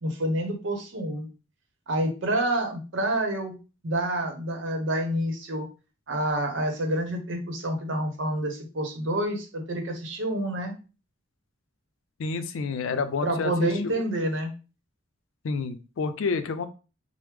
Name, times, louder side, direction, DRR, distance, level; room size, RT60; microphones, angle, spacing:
voice 1, 0.0-1.3 1.9-3.6 3.8-5.7 6.1-10.7 13.2-14.5, right 1 dB, 70° right, 4 dB, 0.8 m, -28 dB
voice 2, 12.2-14.1 15.4-16.7, left 4 dB, 85° left, 10 dB, 0.4 m, -29 dB
3.1 x 2.0 x 3.4 m, 0.33 s
head